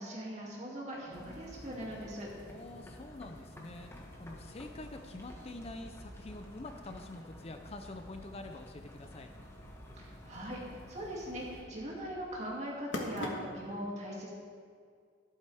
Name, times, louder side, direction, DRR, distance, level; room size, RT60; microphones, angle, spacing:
voice 1, 0.0-2.3 10.0-14.3, equal, 35° right, -4 dB, 2.5 m, -40 dB
sound 1, 0.9-13.8, left 1 dB, 75° left, 1.4 m, -49 dB
sound 2, 1.1-11.6, equal, 15° left, 1.3 m, -51 dB
voice 2, 2.5-9.3, left 2 dB, 35° left, 6 dB, 0.5 m, -46 dB
12.5 x 11.5 x 3.5 m, 2.1 s
head